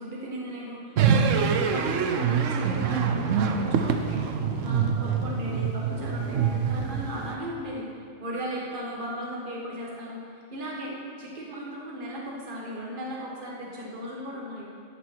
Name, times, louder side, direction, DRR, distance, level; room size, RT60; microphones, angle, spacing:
voice 1, 0.0-4.2 4.6-7.8 8.2-14.7, equal, 40° right, -3 dB, 1.6 m, -36 dB
sound 1, 1.0-7.3, right 6 dB, 75° right, 1.1 m, -25 dB
12.0 x 7.3 x 4.5 m, 2.3 s
omnidirectional pair, 1.3 m